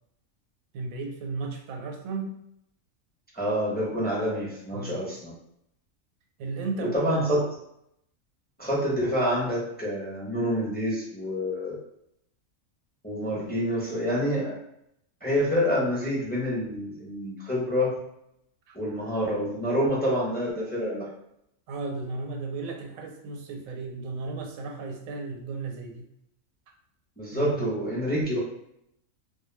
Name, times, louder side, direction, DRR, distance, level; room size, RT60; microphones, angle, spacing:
voice 1, 0.7-2.4 4.7-5.0 6.4-7.4 18.7-18.8 21.7-26.1 27.3-27.7, right 3 dB, 90° right, 2 dB, 1.0 m, -35 dB
voice 2, 3.3-5.3 6.8-7.5 8.6-11.7 13.0-14.5 15.2-18.0 18.7-21.1 27.2-28.4, equal, 10° left, -6 dB, 0.5 m, -27 dB
2.3 x 2.2 x 3.1 m, 0.77 s
omnidirectional pair, 1.4 m